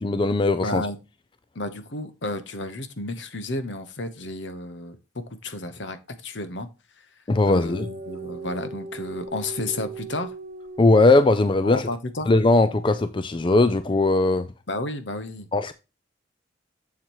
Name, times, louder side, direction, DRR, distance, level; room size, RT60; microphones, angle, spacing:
voice 1, 0.0-0.9 7.3-7.9 10.8-11.9 12.3-14.5 15.5-15.7, left 2 dB, 25° left, 0.4 m, -19 dB
voice 2, 0.6-1.0 1.5-6.7 7.4-10.3 11.6-12.3 14.7-15.5, left 2 dB, 65° left, 1.1 m, -32 dB
sound 1, 7.7-11.7, right 3 dB, 50° right, 1.1 m, -38 dB
7.4 x 7.2 x 3.0 m
head